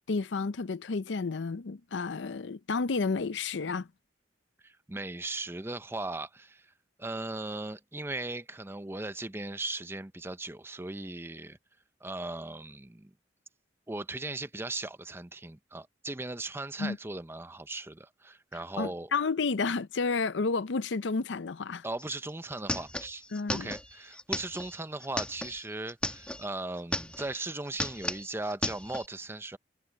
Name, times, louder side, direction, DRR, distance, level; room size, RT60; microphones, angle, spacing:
voice 1, 0.1-3.9 16.8-17.0 18.8-21.8 23.3-23.7, left 4 dB, 85° left, 0.6 m, -31 dB
voice 2, 4.6-6.7 7.0-11.6 12.0-13.1 13.9-19.1 21.8-23.2 23.5-29.6, right 2 dB, 15° right, 0.6 m, -38 dB
sound 1, 22.0-22.1 22.3-26.5 26.8-27.4 27.7-29.1, left 1 dB, 5° left, 2.2 m, -35 dB
head